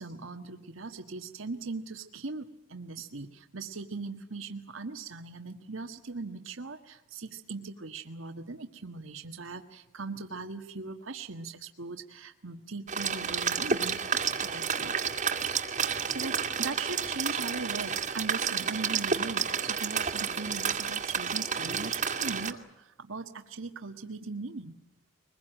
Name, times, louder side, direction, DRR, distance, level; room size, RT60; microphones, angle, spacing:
voice 1, 0.0-14.9 15.7-24.7, right 3 dB, 80° right, 6 dB, 1.5 m, -40 dB
sound 1, 12.9-22.5, right 6 dB, 40° right, 2.0 m, -30 dB
23.5 x 21.0 x 9.1 m, 0.92 s
head